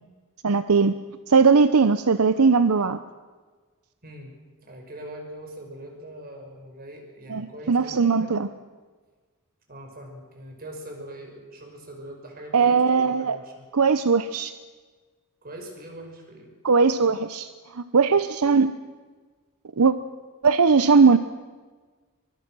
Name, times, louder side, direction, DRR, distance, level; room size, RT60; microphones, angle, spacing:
voice 1, 0.4-0.9 1.3-3.0 7.3-8.5 12.5-13.4 13.7-14.5 16.6-18.7 19.8-19.9 20.4-21.2, right 5 dB, 80° right, 12 dB, 0.8 m, -19 dB
voice 2, 4.0-4.3 4.6-8.4 9.7-13.6 15.4-16.5, right 1 dB, 45° right, 3 dB, 5.6 m, -42 dB
23.5 x 23.5 x 6.2 m, 1.4 s
head